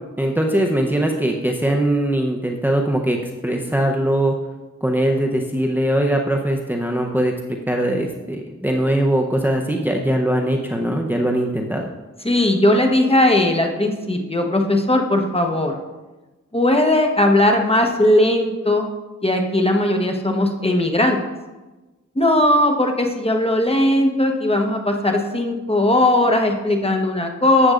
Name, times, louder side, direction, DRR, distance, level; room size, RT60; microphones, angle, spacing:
voice 1, 0.2-3.2 3.4-4.3 4.8-7.3 7.7-11.9, right 1 dB, 5° right, 1 dB, 0.8 m, -21 dB
voice 2, 12.2-15.8 16.5-18.9 19.2-21.2 22.1-27.7, left 1 dB, 20° left, 3 dB, 1.1 m, -18 dB
13.0 x 7.9 x 2.5 m, 1.2 s
cardioid pair, 55°, 30 cm